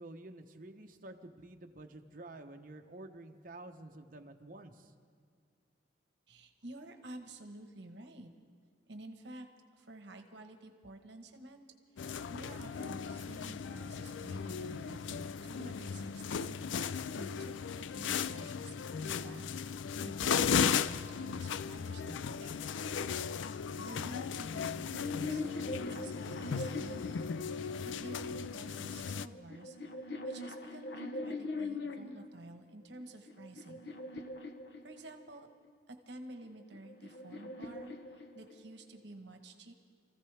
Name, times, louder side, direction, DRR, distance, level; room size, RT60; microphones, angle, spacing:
voice 1, 0.0-4.9, right 2 dB, 45° right, 5 dB, 1.0 m, -50 dB
voice 2, 6.3-8.3 8.9-9.5 9.8-11.6 12.0-16.6 17.1-19.7 20.0-22.6 23.8-27.1 27.8-29.8 30.2-33.9 34.8-35.5 35.9-39.7, right 2 dB, 70° right, 5 dB, 1.2 m, -50 dB
sound 1, 12.0-29.3, left 6 dB, 85° left, 0.4 m, -36 dB
sound 2, 24.6-28.0 28.9-32.3 33.0-35.4 36.4-38.8, left 2 dB, 60° left, 1.0 m, -42 dB
28.0 x 15.0 x 3.4 m, 2.1 s
head